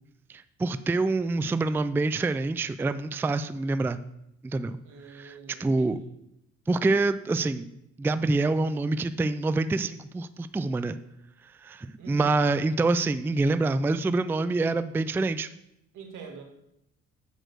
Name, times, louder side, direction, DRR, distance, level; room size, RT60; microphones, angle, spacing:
voice 1, 0.3-4.0 4.4-4.8 5.1-6.0 6.7-7.7 8.0-11.0 11.6-15.5, right 3 dB, 10° right, 12 dB, 0.3 m, -26 dB
voice 2, 4.8-6.1 12.0-12.5 15.9-16.4, right 5 dB, 80° right, 3 dB, 1.8 m, -45 dB
7.8 x 4.4 x 6.5 m, 0.81 s
cardioid pair, 90°, 30 cm